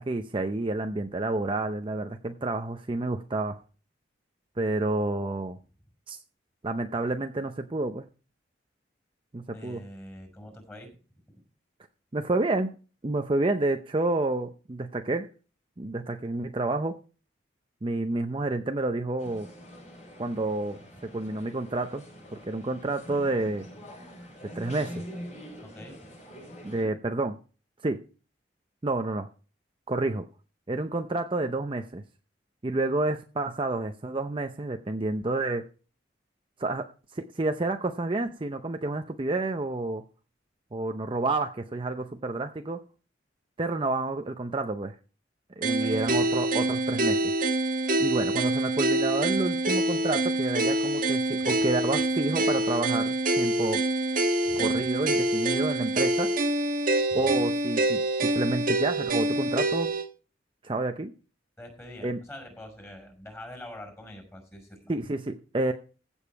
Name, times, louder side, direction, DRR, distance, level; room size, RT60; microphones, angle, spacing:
voice 1, 0.0-3.6 4.6-5.6 6.1-6.2 6.6-8.1 9.3-9.8 12.1-12.7 13.0-15.3 15.8-16.9 17.8-19.5 20.2-20.8 21.1-22.0 22.3-23.7 24.5-25.1 26.6-27.4 27.8-28.0 28.8-29.3 29.9-30.3 30.7-32.0 32.6-35.6 36.6-40.0 40.7-42.8 43.6-44.9 45.6-47.3 48.0-53.9 54.6-56.3 57.1-60.0 60.6-61.1 62.0-62.2 64.9-65.7, right 2 dB, 30° right, 6 dB, 0.6 m, -29 dB
voice 2, 9.5-10.9 11.3-11.4 25.6-26.0 45.7-46.0 54.5-54.8 57.1-57.3 61.6-64.9, left 1 dB, 15° left, 4 dB, 5.4 m, -45 dB
sound 1, 19.2-26.8, equal, 40° left, 6.6 m, -44 dB
sound 2, 45.6-60.1, right 1 dB, 50° right, 1.3 m, -26 dB
15.5 x 7.2 x 4.6 m, 0.37 s
head